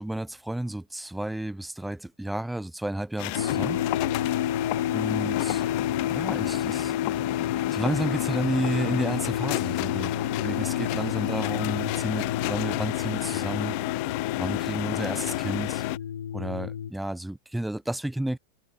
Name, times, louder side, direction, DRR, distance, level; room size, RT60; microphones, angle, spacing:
voice 1, 0.0-3.8 4.9-5.6 6.1-6.9 7.3-13.8 14.4-15.8 16.3-18.4, right 1 dB, 5° right, 2.8 m, -31 dB
sound 1, 3.2-16.0, left 40 dB or more, 45° left, 1.9 m, -30 dB
sound 2, 3.4-16.9, left 9 dB, 65° left, 1.4 m, -31 dB
figure-of-eight pair, 90°, 0 cm